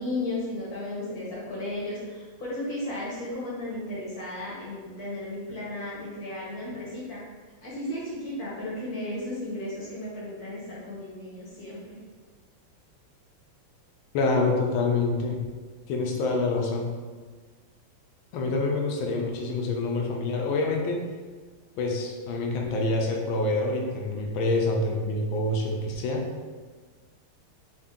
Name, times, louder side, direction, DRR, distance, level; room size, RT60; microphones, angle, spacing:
voice 1, 0.0-7.2 7.6-12.0, left 1 dB, 55° left, -6 dB, 1.2 m, -34 dB
voice 2, 14.1-15.4 15.9-16.9 18.3-21.0 21.8-26.3, left 2 dB, 80° left, 1 dB, 1.4 m, -26 dB
4.6 x 2.4 x 3.6 m, 1.4 s
omnidirectional pair, 2.2 m